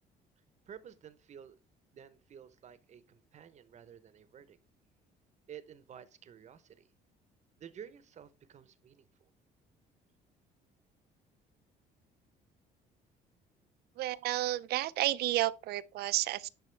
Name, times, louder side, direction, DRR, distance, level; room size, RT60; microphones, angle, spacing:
voice 1, 0.7-1.6 1.9-4.6 5.5-6.9 7.6-9.3, right 8 dB, 45° right, 0.7 m, -52 dB
voice 2, 14.0-16.5, right 15 dB, 70° right, 0.4 m, -31 dB
10.5 x 4.1 x 3.2 m
cardioid pair, 110°, 17 cm